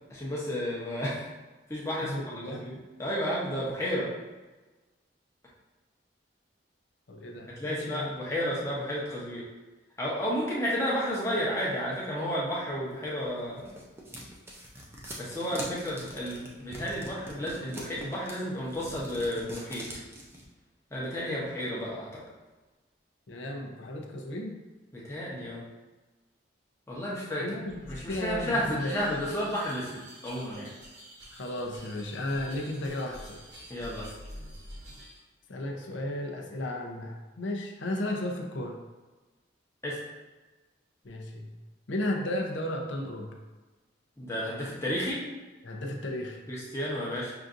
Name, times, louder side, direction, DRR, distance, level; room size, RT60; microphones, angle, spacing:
voice 1, 0.1-1.3 1.7-2.1 2.5-4.1 7.6-9.4 10.0-13.8 15.2-19.9 20.9-22.1 24.9-25.6 26.9-27.4 27.9-30.7 33.7-34.1 39.8-40.0 44.2-45.2 46.5-47.3, equal, 15° left, -6 dB, 0.8 m, -32 dB
voice 2, 2.0-2.7 7.1-8.1 23.3-24.6 27.4-28.9 31.3-33.4 35.5-38.8 41.0-41.5 41.9-43.3 45.6-46.4, left 1 dB, 75° left, 0 dB, 0.6 m, -34 dB
sound 1, 13.2-20.4, equal, 15° right, 0.5 m, -43 dB
sound 2, 27.7-35.2, equal, 70° right, 1.1 m, -47 dB
5.7 x 2.6 x 2.5 m, 1.2 s
head